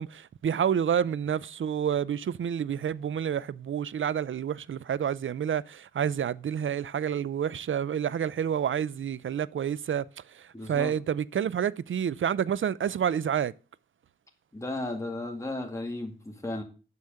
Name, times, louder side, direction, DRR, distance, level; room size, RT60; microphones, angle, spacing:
voice 1, 0.0-13.5, right 8 dB, 75° right, 0.5 m, -29 dB
voice 2, 10.5-10.9 14.5-16.6, left 2 dB, 15° left, 2.1 m, -34 dB
8.2 x 7.1 x 6.4 m
cardioid pair, 60°, 21 cm